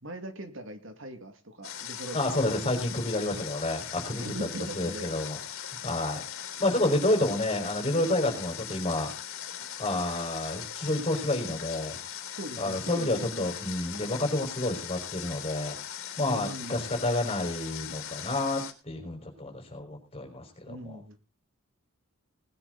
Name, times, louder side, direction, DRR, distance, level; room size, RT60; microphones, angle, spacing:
voice 1, 0.0-2.4 4.1-5.1 12.4-13.5 16.2-16.9 20.7-21.2, right 1 dB, 60° right, 7 dB, 2.3 m, -40 dB
Water, 1.6-18.7, left 9 dB, 70° left, 3.3 m, -40 dB
voice 2, 2.1-4.5 4.7-6.2 6.6-9.1 9.8-12.0 12.6-15.8 16.2-21.0, left 1 dB, 25° left, 3 dB, 5.3 m, -29 dB
20.0 x 10.5 x 4.0 m, 0.32 s
head